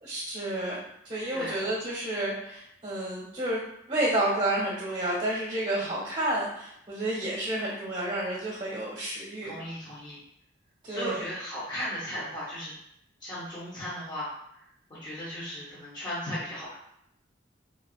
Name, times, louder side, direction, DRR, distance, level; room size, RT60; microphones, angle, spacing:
voice 1, 0.0-9.6 10.8-11.2, right 1 dB, 30° right, -7 dB, 0.9 m, -30 dB
voice 2, 9.4-10.2 10.9-12.7 13.2-16.8, equal, 25° left, -9 dB, 0.8 m, -36 dB
3.7 x 2.3 x 2.4 m, 0.75 s
head